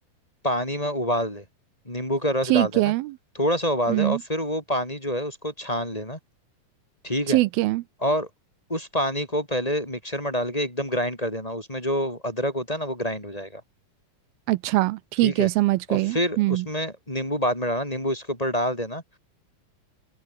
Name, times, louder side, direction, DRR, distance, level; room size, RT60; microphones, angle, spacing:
voice 1, 0.4-1.4 1.9-2.9 3.4-6.2 7.0-7.4 8.0-8.3 8.7-13.6 15.2-15.5 15.9-19.0, equal, 10° left, 5.0 m, -27 dB
voice 2, 2.4-3.2 3.9-4.2 7.3-7.8 14.5-16.7, right 19 dB, 85° right, 2.5 m, -22 dB
open air
omnidirectional pair, 4.3 m